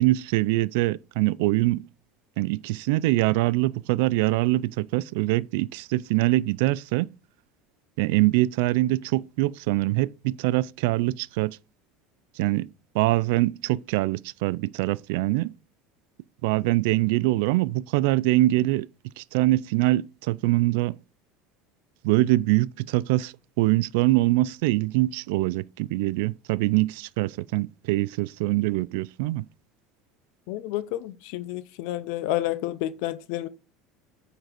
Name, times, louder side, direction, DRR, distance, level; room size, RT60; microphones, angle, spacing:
voice 1, 0.0-1.8 2.4-7.1 8.0-11.6 12.4-12.7 12.9-15.5 16.4-18.9 19.2-21.0 22.0-29.5, right 18 dB, 75° right, 0.3 m, -24 dB
voice 2, 30.5-33.5, left 15 dB, 70° left, 0.6 m, -30 dB
9.1 x 4.0 x 5.1 m
cardioid pair, 150°, 0 cm